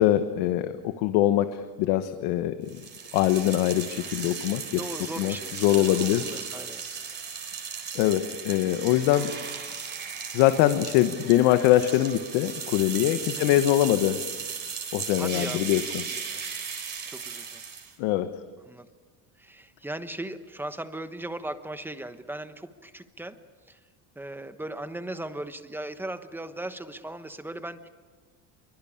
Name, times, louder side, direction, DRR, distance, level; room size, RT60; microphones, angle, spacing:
voice 1, 0.0-2.8 3.1-4.8 5.2-6.3 7.9-9.3 10.3-14.2 14.9-16.0 18.0-18.3, left 13 dB, 85° left, 9 dB, 1.3 m, -23 dB
sound 1, 2.7-18.0, right 6 dB, 30° right, 4.1 m, -36 dB
voice 2, 4.8-6.8 13.3-13.6 15.2-16.4 17.1-17.6 18.7-18.9 19.4-23.4 23.6-23.8 24.1-27.9, right 1 dB, 5° right, 10 dB, 1.1 m, -38 dB
27.0 x 23.5 x 8.7 m, 1.5 s
cardioid pair, 150°, 38 cm